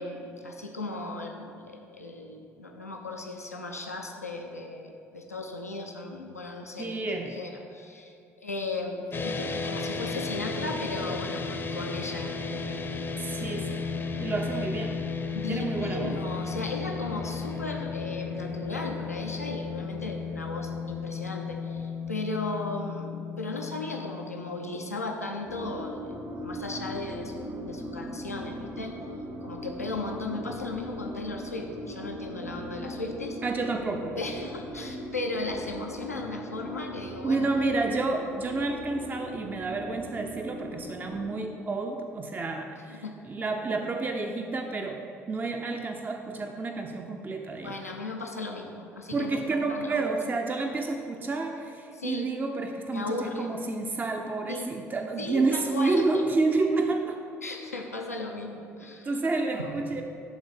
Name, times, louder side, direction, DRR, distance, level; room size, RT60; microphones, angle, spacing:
voice 1, 0.0-13.1 15.3-29.0 29.4-33.4 34.2-37.5 42.9-43.1 47.6-49.3 49.7-50.1 51.9-52.3 52.9-53.5 54.5-54.7 55.2-56.0 57.4-59.2 59.5-59.9, left 2 dB, 85° left, 1 dB, 0.6 m, -36 dB
voice 2, 6.8-7.4 13.2-13.8 14.2-15.1 15.5-16.1 33.4-34.2 37.2-45.0 45.3-47.9 49.1-57.2 59.0-60.0, right 3 dB, 20° right, 3 dB, 0.6 m, -30 dB
sound 1, 9.1-25.5, left 4 dB, 25° left, 0.7 m, -34 dB
sound 2, 25.5-41.3, equal, 50° right, 1.4 m, -39 dB
11.0 x 3.9 x 5.2 m, 2.6 s
figure-of-eight pair, 55°, 8 cm